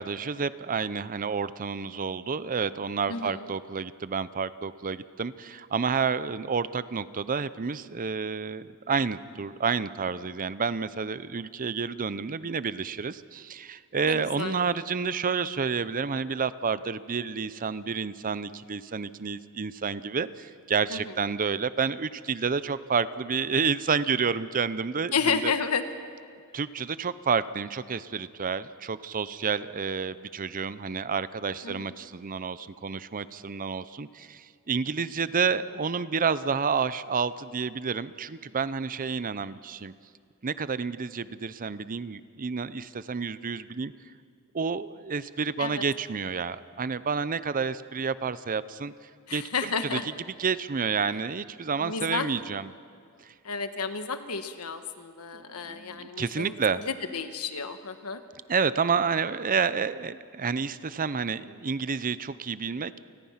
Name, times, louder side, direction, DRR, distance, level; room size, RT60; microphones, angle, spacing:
voice 1, 0.0-25.5 26.5-39.9 40.4-43.9 44.5-48.9 49.3-50.0 50.4-52.7 53.2-53.3 55.3-56.8 58.5-63.0, right 5 dB, 40° right, 15 dB, 0.6 m, -30 dB
voice 2, 3.1-3.4 14.0-14.6 20.9-21.0 25.1-25.8 31.6-31.9 45.6-45.8 49.3-50.1 51.8-52.3 53.4-58.2, left 5 dB, 80° left, 8 dB, 1.4 m, -31 dB
29.0 x 20.0 x 5.8 m, 2.2 s
head